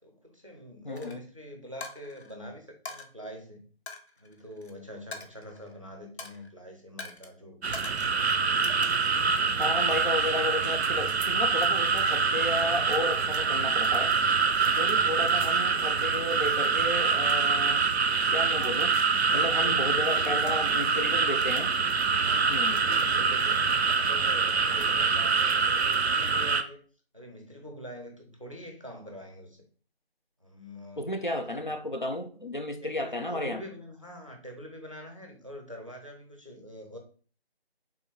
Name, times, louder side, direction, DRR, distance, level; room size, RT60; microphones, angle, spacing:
voice 1, 0.0-3.7 4.2-7.8 9.2-10.1 19.3-21.2 22.1-23.6 24.0-26.8 27.1-29.7 30.4-31.1 31.4-31.7 32.8-37.0, equal, 30° right, 3 dB, 0.6 m, -44 dB
voice 2, 0.8-1.2 9.6-14.1 14.8-17.8 18.3-19.0 19.3-21.7 22.5-22.9 31.0-33.6, left 1 dB, 50° left, 5 dB, 0.5 m, -33 dB
Coin (dropping), 0.9-1.1 1.8-2.3 2.8-3.1 3.9-4.7 5.1-5.8 6.2-6.5 7.0-7.3 7.7-8.2 8.6-9.3, left 3 dB, 80° left, 0.9 m, -43 dB
sound 1, 7.6-26.6, right 5 dB, 85° right, 0.5 m, -25 dB
3.7 x 2.5 x 4.1 m, 0.42 s
figure-of-eight pair, 165°, 32 cm